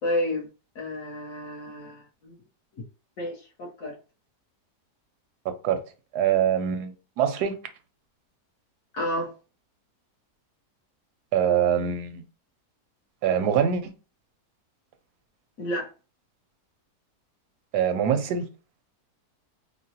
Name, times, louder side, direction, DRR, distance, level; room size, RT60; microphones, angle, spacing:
voice 1, 0.0-0.5 0.7-2.3 3.2-4.0 8.9-9.3 15.6-15.9, left 1 dB, 65° left, 1.4 m, -31 dB
voice 2, 5.4-5.8 6.1-7.6 11.3-12.2 13.2-13.9 17.7-18.5, right 8 dB, 85° right, 1.2 m, -24 dB
3.7 x 2.1 x 2.7 m
omnidirectional pair, 1.7 m